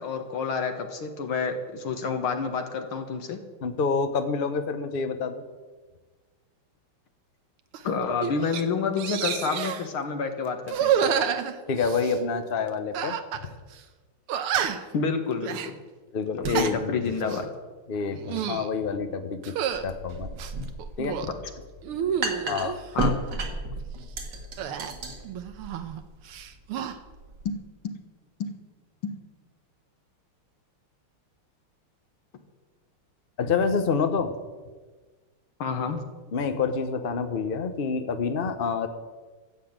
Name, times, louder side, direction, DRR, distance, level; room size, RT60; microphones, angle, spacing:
voice 1, 0.0-3.4 7.8-11.1 14.9-15.8 16.5-17.5 22.9-23.6 27.5-27.6 27.8-28.0 28.4-28.5 29.0-29.1 35.6-36.0, left 5 dB, 75° left, 6 dB, 2.3 m, -29 dB
voice 2, 3.6-5.4 11.7-13.2 16.1-17.3 17.9-19.5 19.8-20.3 21.0-21.2 22.0-22.8 33.4-34.3 36.3-38.9, left 5 dB, 50° left, 8 dB, 0.6 m, -27 dB
sound 1, 7.7-7.9 8.2-8.6 9.0-9.9 10.7-12.2 12.9-13.5 13.7-13.8 14.3-14.9 15.4-15.7 16.3-16.8 17.2-17.5 18.1-18.7 19.4-19.8 20.4-21.3 21.8-22.8 24.6-26.0 26.3-26.9, right 8 dB, 80° right, 1.8 m, -29 dB
sound 2, 19.7-27.5, right 2 dB, 55° right, 2.2 m, -33 dB
14.0 x 8.1 x 8.8 m, 1.4 s
omnidirectional pair, 2.4 m